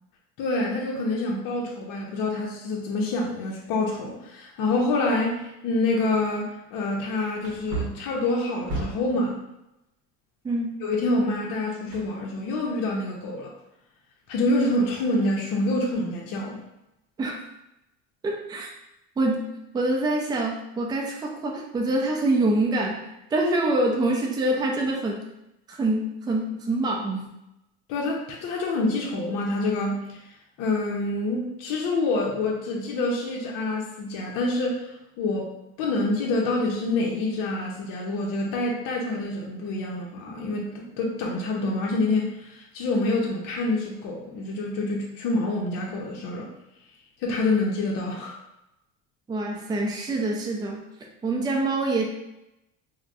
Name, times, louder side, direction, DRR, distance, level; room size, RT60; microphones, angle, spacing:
voice 1, 0.4-9.4 10.8-13.5 14.3-16.6 27.9-30.2 30.6-34.9 35.2-35.5 35.8-46.5 47.2-48.4, left 2 dB, 60° left, -2 dB, 0.7 m, -27 dB
Wood, 7.4-9.2 11.9-12.7 13.0-13.1, right 3 dB, 40° right, 0.8 m, -34 dB
voice 2, 18.2-18.7 19.2-19.5 19.7-25.2 25.7-27.3 49.3-50.8 51.2-52.0, right 2 dB, 10° right, 0 dB, 0.3 m, -25 dB
3.3 x 2.1 x 2.5 m, 0.89 s
supercardioid pair, 110°, 36 cm